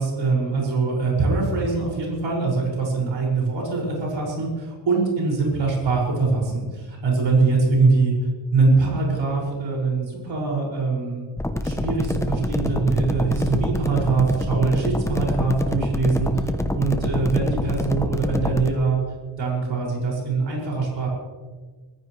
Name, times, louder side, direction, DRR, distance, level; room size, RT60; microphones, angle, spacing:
voice 1, 0.0-4.5 4.9-8.1 8.5-11.2 11.6-19.0 19.4-21.1, right 4 dB, 65° right, -3 dB, 5.8 m, -23 dB
sound 1, 11.4-18.7, left 1 dB, 5° left, 0.7 m, -26 dB
24.0 x 15.0 x 3.2 m, 1.4 s
wide cardioid pair, 155°, 48 cm